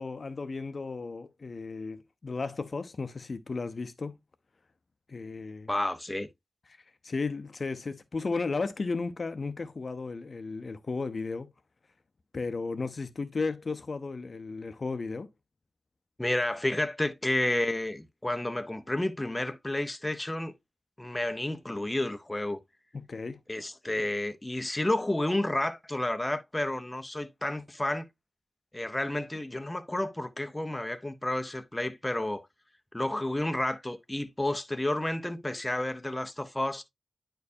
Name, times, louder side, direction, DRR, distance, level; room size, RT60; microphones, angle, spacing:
voice 1, 0.0-4.1 5.1-5.7 7.0-11.5 12.3-15.3 22.9-23.4, left 4 dB, 55° left, 0.6 m, -34 dB
voice 2, 5.7-6.3 16.2-20.5 21.0-22.6 23.5-28.1 28.7-32.4 32.9-36.8, left 1 dB, 15° left, 0.7 m, -31 dB
9.5 x 4.5 x 2.6 m
wide cardioid pair, 100°, 0 cm